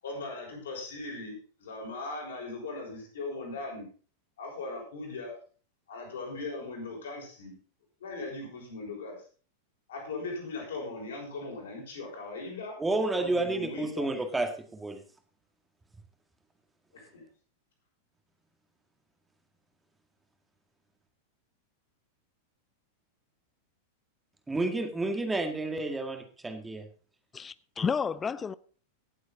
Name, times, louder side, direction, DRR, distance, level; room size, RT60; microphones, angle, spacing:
voice 1, 0.0-3.9 4.4-5.3 5.9-7.5 8.0-9.2 9.9-12.8 13.1-14.1 16.9-17.2, left 3 dB, 65° left, 6.2 m, -39 dB
voice 2, 12.8-15.0 24.5-26.9, right 2 dB, 10° right, 2.0 m, -30 dB
voice 3, 27.3-28.5, left 6 dB, 20° left, 0.6 m, -31 dB
18.0 x 7.8 x 4.0 m
figure-of-eight pair, 90°, 0 cm